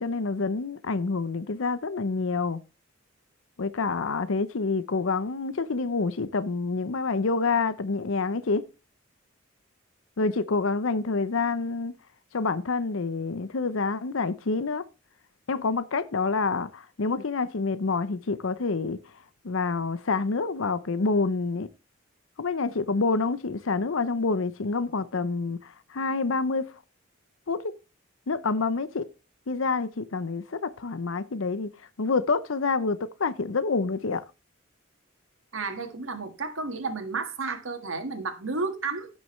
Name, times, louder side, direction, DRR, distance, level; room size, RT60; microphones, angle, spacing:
voice 1, 0.0-2.6 3.6-8.6 10.2-11.9 12.3-14.8 15.5-19.0 19.4-21.7 22.4-26.6 27.5-27.7 28.3-29.1 29.5-31.7 32.0-34.2, left 4 dB, 75° left, 0.7 m, -27 dB
voice 2, 35.5-39.1, right 4 dB, 75° right, 1.7 m, -32 dB
16.0 x 6.3 x 3.1 m
head